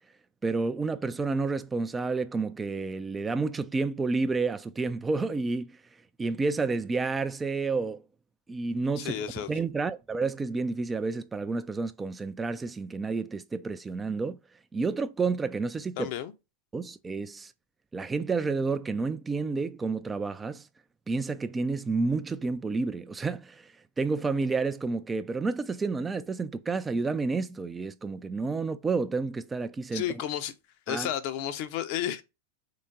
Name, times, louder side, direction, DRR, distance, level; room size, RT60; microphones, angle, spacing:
voice 1, 0.4-5.8 6.2-8.0 8.5-14.4 14.7-16.1 16.7-17.5 17.9-20.7 21.1-30.2 30.9-31.1, right 4 dB, 15° right, 0.3 m, -30 dB
voice 2, 9.0-9.5 16.0-16.3 29.9-30.5 30.9-32.2, left 11 dB, 45° left, 0.6 m, -32 dB
3.9 x 3.6 x 3.7 m
figure-of-eight pair, 90°, 0 cm